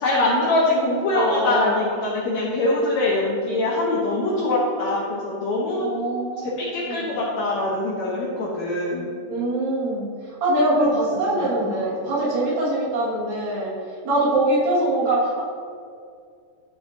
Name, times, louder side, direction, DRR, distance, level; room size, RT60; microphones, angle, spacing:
voice 1, 0.0-5.9 6.6-9.1 11.3-11.4 11.6-11.8, left 2 dB, 65° left, -4 dB, 1.9 m, -23 dB
voice 2, 1.1-1.8 5.8-6.5 6.8-7.2 9.3-10.1 10.4-13.7 14.0-15.4, right 1 dB, 75° right, -7 dB, 3.6 m, -23 dB
12.5 x 5.4 x 2.7 m, 2.2 s
omnidirectional pair, 4.1 m